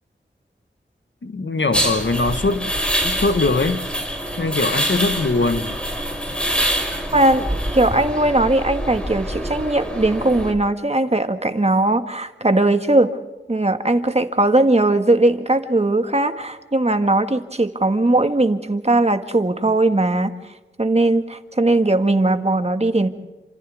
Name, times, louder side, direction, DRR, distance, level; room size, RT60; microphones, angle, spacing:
voice 1, 1.2-2.7 3.0-3.9 4.4-5.8, left 3 dB, 75° left, 1.5 m, -21 dB
sound 1, 1.7-10.5, equal, 5° left, 5.2 m, -25 dB
voice 2, 7.1-7.5 7.7-13.1 13.5-20.3 20.8-23.1, right 2 dB, 35° right, 1.8 m, -19 dB
29.5 x 27.0 x 3.6 m
wide cardioid pair, 60°, 19 cm